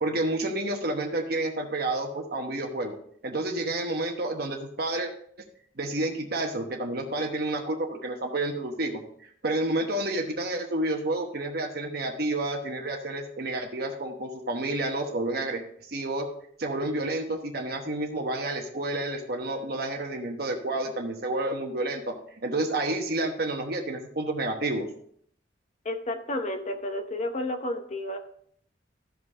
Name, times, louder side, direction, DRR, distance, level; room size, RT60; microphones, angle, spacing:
voice 1, 0.0-3.0 3.2-5.1 5.8-16.3 16.6-22.1 22.4-24.9, right 2 dB, 60° right, 2 dB, 1.1 m, -30 dB
voice 2, 25.8-28.2, left 1 dB, 40° left, 5 dB, 0.8 m, -31 dB
14.0 x 5.4 x 3.6 m, 0.63 s
head